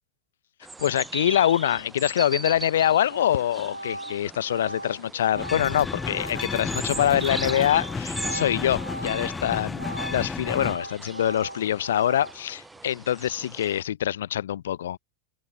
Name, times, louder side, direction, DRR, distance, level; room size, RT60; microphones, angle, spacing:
sound 1, 0.6-13.8, right 3 dB, 10° right, 0.5 m, -40 dB
voice 1, 0.8-15.0, left 11 dB, 60° left, 0.8 m, -25 dB
Organ, 2.5-2.7 3.1-9.4 9.7-12.6, right 1 dB, 85° right, 2.5 m, -38 dB
sound 2, 5.3-10.8, left 4 dB, 15° left, 1.0 m, -32 dB
open air
figure-of-eight pair, 90°, 0 cm